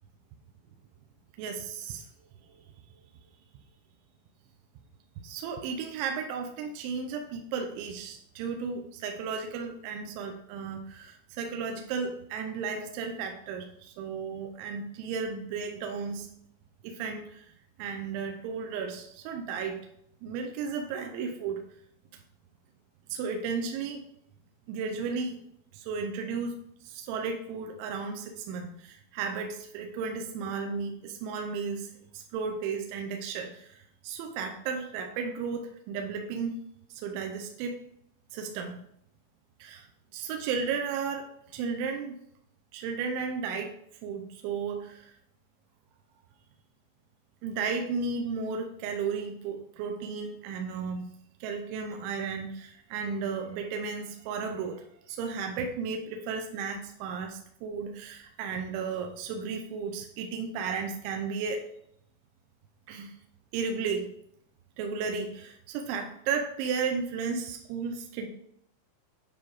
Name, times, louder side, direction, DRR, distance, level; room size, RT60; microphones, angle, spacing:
voice 1, 1.4-2.0 5.2-16.3 16.8-17.5 17.8-19.8 20.2-21.6 23.1-24.0 24.7-25.4 25.7-26.6 26.9-31.9 32.1-36.6 37.0-37.8 38.3-38.8 39.6-39.8 40.1-41.3 41.5-42.1 42.7-43.8 44.0-45.1 47.4-51.1 51.4-61.7 62.9-63.1 63.5-64.1 64.8-68.3, right 5 dB, 80° right, 4 dB, 2.8 m, -34 dB
9.6 x 3.6 x 4.5 m, 0.72 s
omnidirectional pair, 5.8 m